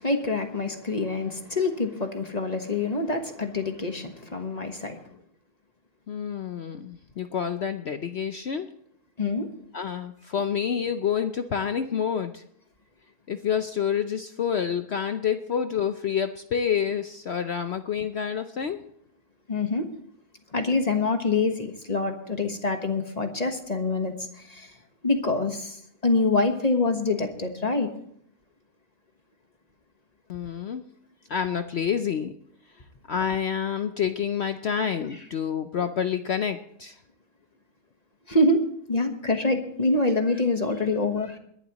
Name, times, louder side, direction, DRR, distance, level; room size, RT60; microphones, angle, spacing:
voice 1, 0.0-5.1 9.2-9.5 19.5-19.9 20.5-24.7 25.0-27.9 38.3-41.4, left 2 dB, 25° left, 5 dB, 1.2 m, -26 dB
voice 2, 6.1-8.7 9.7-12.4 13.3-18.8 30.3-30.9 31.3-32.3 33.1-37.0, left 7 dB, 60° left, 8 dB, 0.7 m, -28 dB
22.0 x 11.5 x 3.0 m, 0.67 s
omnidirectional pair, 1.7 m